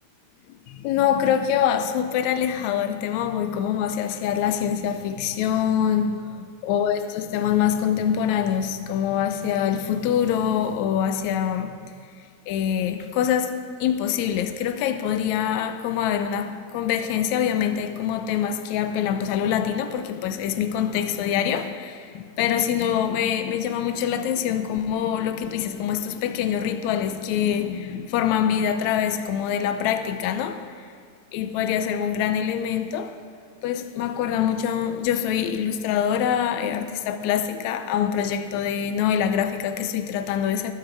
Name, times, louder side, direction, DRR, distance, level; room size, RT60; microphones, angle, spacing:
voice 1, 0.7-11.8 12.5-30.9 31.3-33.2 33.6-40.7, left 9 dB, 85° left, 1.6 m, -25 dB
20.0 x 8.2 x 4.8 m
omnidirectional pair, 4.0 m